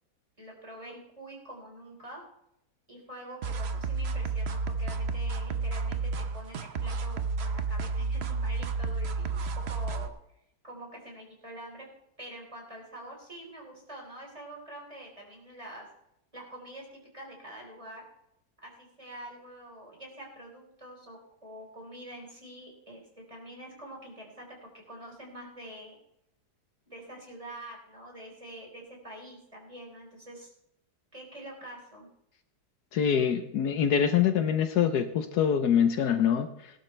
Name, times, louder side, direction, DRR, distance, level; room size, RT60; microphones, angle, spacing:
voice 1, 0.4-2.2 2.9-10.1 10.6-11.9 12.2-15.9 16.3-18.0 18.6-24.5 24.9-26.0 26.9-30.5 31.1-32.1, right 1 dB, 20° right, -1 dB, 4.4 m, -46 dB
sound 1, 3.4-10.1, right 4 dB, 50° right, 0.9 m, -31 dB
voice 2, 32.9-36.5, left 8 dB, 70° left, 8 dB, 1.3 m, -24 dB
19.0 x 11.5 x 3.3 m, 0.80 s
omnidirectional pair, 1.8 m